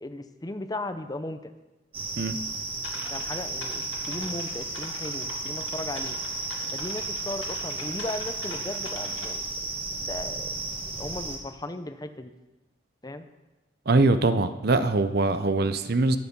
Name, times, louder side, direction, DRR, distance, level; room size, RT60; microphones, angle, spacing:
voice 1, 0.0-1.5 3.1-6.2 6.7-9.4 10.0-10.5 11.0-12.3 13.0-13.3, left 1 dB, 20° left, 9 dB, 0.6 m, -36 dB
sound 1, 1.9-11.4, right 3 dB, 30° right, 1.7 m, -33 dB
sound 2, 2.8-9.3, left 4 dB, 75° left, 2.2 m, -43 dB
voice 2, 13.9-16.2, right 3 dB, 55° right, 11 dB, 0.7 m, -22 dB
21.0 x 7.0 x 5.3 m, 1.1 s
head